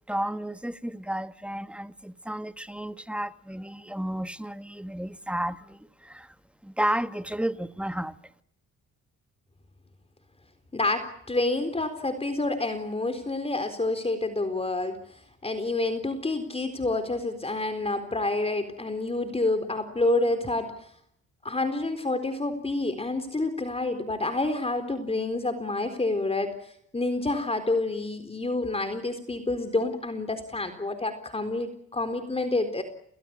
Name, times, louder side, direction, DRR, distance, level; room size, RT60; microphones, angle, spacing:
voice 1, 0.1-6.3 6.6-8.1, right 1 dB, 5° right, 1.6 m, -32 dB
voice 2, 10.7-15.0 15.4-20.7 21.4-26.5 26.9-32.8, left 2 dB, 20° left, 4.0 m, -28 dB
29.5 x 19.0 x 8.7 m
cardioid pair, 90°, 30 cm